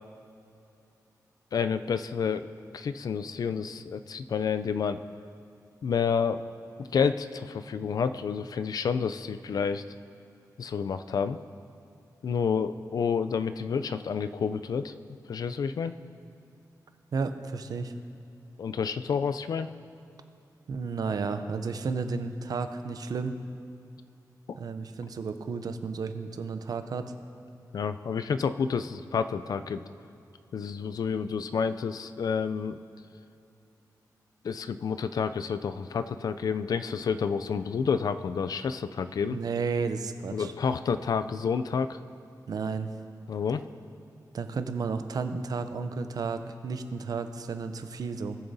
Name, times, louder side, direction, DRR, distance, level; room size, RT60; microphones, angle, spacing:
voice 1, 1.5-2.4 2.7-5.0 5.8-6.4 6.9-9.8 10.6-11.4 12.2-14.9 15.3-15.9 18.6-19.7 27.7-29.8 30.5-32.8 34.4-39.4 40.3-42.0 43.3-43.6, left 6 dB, 65° left, 11 dB, 0.3 m, -29 dB
voice 2, 17.1-17.9 20.7-23.4 24.5-27.1 39.3-40.5 42.5-42.9 44.3-48.4, right 4 dB, 65° right, 9 dB, 0.5 m, -32 dB
18.5 x 7.0 x 2.7 m, 2.6 s
wide cardioid pair, 120°, 7 cm